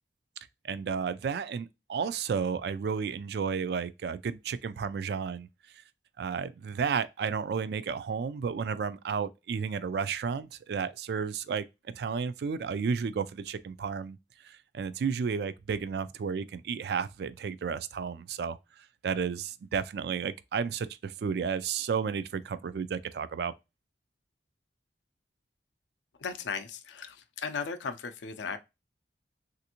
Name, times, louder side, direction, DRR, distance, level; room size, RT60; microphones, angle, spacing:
voice 1, 0.6-5.5 6.2-14.2 14.4-18.6 19.0-23.5, right 6 dB, 60° right, 0.3 m, -32 dB
voice 2, 26.2-28.6, left 5 dB, 80° left, 0.4 m, -36 dB
3.3 x 2.5 x 2.8 m
head